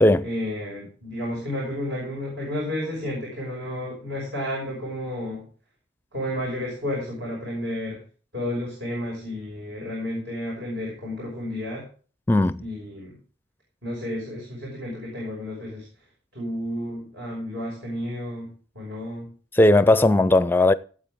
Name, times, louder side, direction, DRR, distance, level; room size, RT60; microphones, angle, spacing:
voice 1, 0.2-5.5 6.1-8.0 8.3-11.9 12.6-13.2 13.8-16.1 16.3-19.3, left 1 dB, 70° right, 5.9 m, -32 dB
voice 2, 12.3-12.6 19.6-20.7, left 1 dB, 10° left, 0.4 m, -17 dB
17.0 x 8.2 x 3.6 m
head